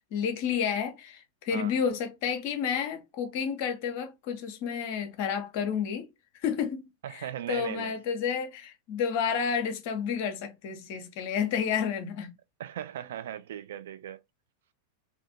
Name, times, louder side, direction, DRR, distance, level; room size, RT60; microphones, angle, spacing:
voice 1, 0.1-6.1 6.4-6.8 7.1-12.3, left 7 dB, 45° left, 0.6 m, -30 dB
voice 2, 7.0-8.0 12.6-14.2, right 11 dB, 60° right, 0.3 m, -38 dB
2.5 x 2.4 x 2.5 m
figure-of-eight pair, 90°, 0 cm